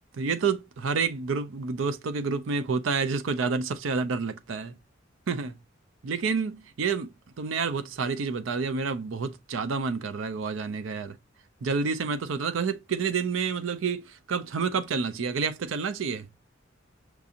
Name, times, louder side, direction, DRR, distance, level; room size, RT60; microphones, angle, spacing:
voice 1, 0.2-4.7 5.3-5.5 6.0-11.2 11.6-16.3, right 5 dB, 75° right, 0.5 m, -29 dB
5.9 x 2.5 x 2.7 m
head